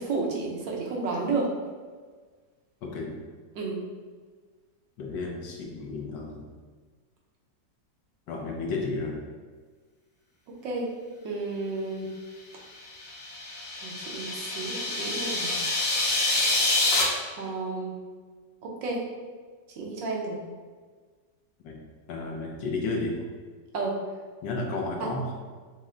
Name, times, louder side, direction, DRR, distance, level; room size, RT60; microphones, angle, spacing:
voice 1, 0.0-1.5 3.5-3.8 10.6-10.9 11.2-12.1 13.8-15.6 17.4-18.0 18.6-19.0 19.8-20.4 23.7-24.0 25.0-25.1, right 3 dB, 85° right, -1 dB, 1.6 m, -31 dB
voice 2, 2.8-3.1 5.0-6.5 8.3-9.2 21.6-21.8 22.1-23.2 24.4-25.3, left 3 dB, 80° left, 0 dB, 1.5 m, -32 dB
sound 1, 12.9-17.0, left 2 dB, 55° left, 1.1 m, -27 dB
6.1 x 2.2 x 3.7 m, 1.5 s
omnidirectional pair, 1.9 m